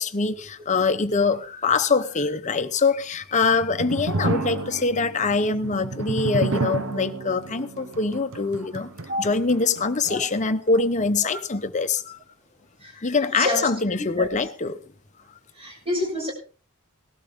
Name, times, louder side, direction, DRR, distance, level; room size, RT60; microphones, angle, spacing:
voice 1, 0.0-8.9 9.2-12.2 13.0-14.8, left 4 dB, 35° left, 0.9 m, -24 dB
sound 1, 3.2-10.4, right 3 dB, 70° right, 0.9 m, -31 dB
voice 2, 13.3-13.7 14.2-14.3 15.6-16.3, left 1 dB, 25° right, 7.3 m, -27 dB
18.5 x 12.5 x 3.7 m
head